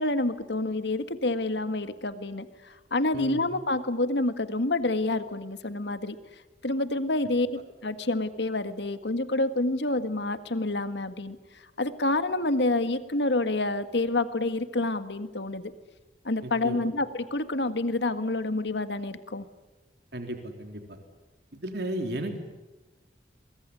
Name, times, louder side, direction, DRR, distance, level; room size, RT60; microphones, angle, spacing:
voice 1, 0.0-6.2 6.6-11.4 11.8-15.7 16.2-19.4, left 2 dB, 85° left, 10 dB, 1.8 m, -28 dB
voice 2, 20.1-21.0 21.6-22.4, right 1 dB, 70° right, 5 dB, 3.5 m, -34 dB
24.0 x 22.5 x 9.9 m, 1.1 s
head